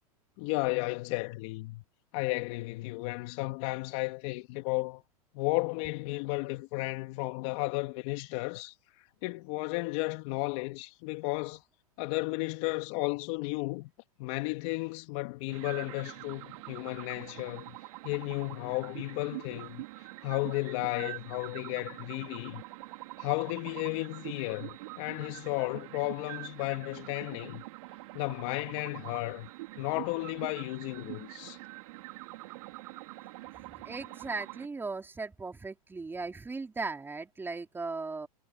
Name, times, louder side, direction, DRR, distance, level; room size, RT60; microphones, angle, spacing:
voice 1, 0.4-1.8 2.1-5.0 5.3-8.7 9.2-11.6 12.0-13.9 14.2-17.8 18.0-19.8 20.2-22.6 23.2-27.6 28.1-29.5 29.8-31.6, left 24 dB, 50° left, 2.7 m, -33 dB
sound 1, 15.5-34.7, right 21 dB, 60° right, 5.1 m, -45 dB
voice 2, 33.7-38.3, right 3 dB, 10° right, 3.9 m, -37 dB
hypercardioid pair, 125°, 19 cm